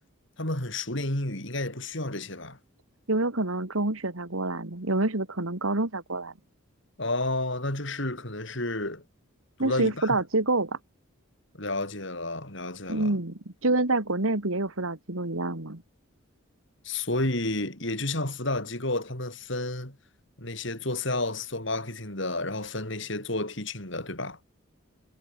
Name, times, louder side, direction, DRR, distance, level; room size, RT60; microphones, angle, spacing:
voice 1, 0.4-2.6 7.0-9.0 9.6-10.2 11.5-13.2 16.8-20.0 20.4-24.4, left 2 dB, 60° left, 5.3 m, -31 dB
voice 2, 3.1-6.3 9.6-10.8 12.9-15.8, right 2 dB, 75° right, 2.3 m, -27 dB
head